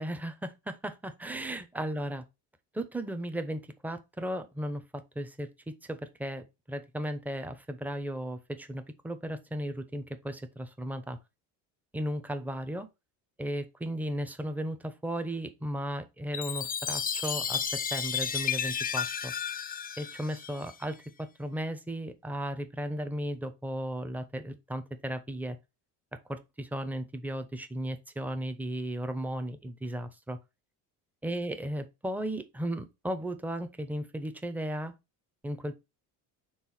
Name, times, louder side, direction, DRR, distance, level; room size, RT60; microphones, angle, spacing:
voice 1, 0.0-2.2 2.7-4.8 5.1-11.2 11.9-12.9 13.4-19.3 20.0-25.6 26.3-30.4 31.2-34.9 35.4-35.7, right 1 dB, 5° right, 0.8 m, -35 dB
Chime, 16.3-20.9, left 7 dB, 25° left, 0.5 m, -33 dB
4.7 x 3.7 x 5.6 m
supercardioid pair, 95°, 40 cm